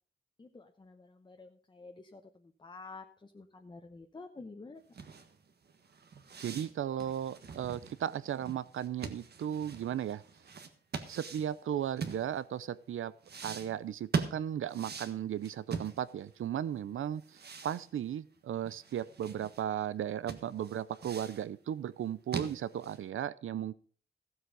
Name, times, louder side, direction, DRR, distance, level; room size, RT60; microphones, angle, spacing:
voice 1, 0.4-4.8, left 3 dB, 25° left, 4 dB, 1.0 m, -50 dB
sound 1, 4.9-12.7 13.2-16.4 16.7-16.8 17.2-19.6 20.0-20.1 20.3-21.5 21.9-23.1, right 5 dB, 55° right, 1.5 m, -42 dB
voice 2, 6.4-10.2 11.1-13.1 13.4-23.7, right 10 dB, 90° right, 18 dB, 0.6 m, -36 dB
15.5 x 8.0 x 5.2 m, 0.43 s
wide cardioid pair, 155°, 20 cm